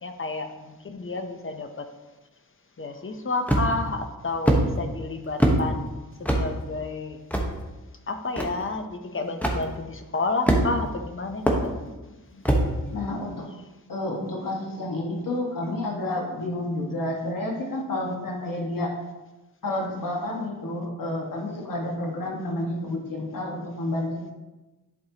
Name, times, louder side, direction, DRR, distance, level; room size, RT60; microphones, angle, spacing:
voice 1, 0.0-1.9 2.8-5.9 6.2-7.2 8.1-12.7, left 3 dB, 35° left, 6 dB, 0.7 m, -31 dB
sound 1, 3.5-3.9 4.5-4.6 5.4-5.6 6.2-6.4 7.3-7.5 8.4-8.5 9.4-9.6 10.5-10.9 11.5-11.6 12.4-12.7, right 1 dB, 5° left, 1.0 m, -20 dB
voice 2, 12.9-13.5 13.9-18.9 19.6-24.3, left 1 dB, 65° left, -1 dB, 1.6 m, -30 dB
11.0 x 4.3 x 2.9 m, 1.1 s
wide cardioid pair, 90°, 35 cm